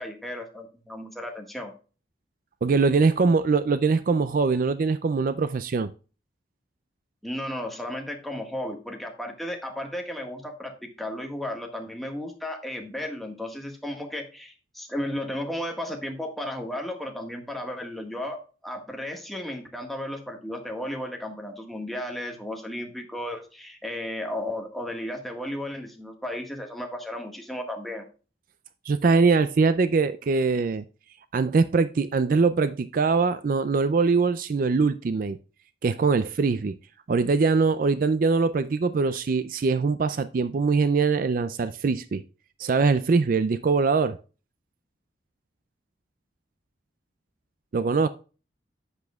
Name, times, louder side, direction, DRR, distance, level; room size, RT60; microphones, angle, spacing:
voice 1, 0.0-1.7 7.2-28.0, left 1 dB, ahead, 1.5 m, -34 dB
voice 2, 2.6-5.9 28.8-30.8 31.3-35.4 35.8-36.8 37.1-42.2 42.6-44.2 47.7-48.1, right 4 dB, 50° right, 0.4 m, -22 dB
10.5 x 8.2 x 2.3 m
head